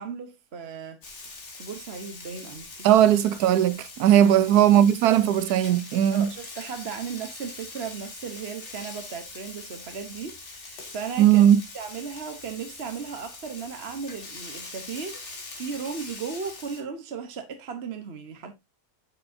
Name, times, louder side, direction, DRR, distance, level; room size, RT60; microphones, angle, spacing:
voice 1, 0.0-2.9 4.2-4.3 6.1-11.5 11.7-18.5, right 6 dB, 45° right, 1.1 m, -36 dB
Frying (food), 1.0-16.8, left 3 dB, 45° left, 2.1 m, -42 dB
voice 2, 2.8-6.3 11.2-11.6, right 10 dB, 80° right, 1.1 m, -18 dB
8.7 x 6.6 x 2.6 m
omnidirectional pair, 1.7 m